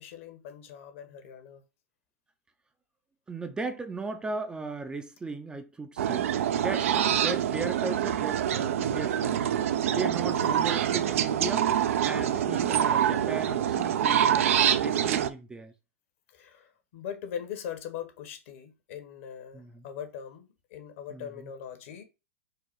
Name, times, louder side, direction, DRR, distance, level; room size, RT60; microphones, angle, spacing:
voice 1, 0.0-1.6 10.3-10.5 12.4-12.7 16.3-22.0, left 8 dB, 60° left, 1.2 m, -41 dB
voice 2, 3.3-6.3 6.6-11.7 12.0-14.5 14.8-15.7 19.5-19.9 21.1-21.5, right 3 dB, 10° right, 0.5 m, -37 dB
sound 1, 6.0-15.3, right 10 dB, 65° right, 0.4 m, -26 dB
4.8 x 2.2 x 4.6 m
hypercardioid pair, 110°, 8 cm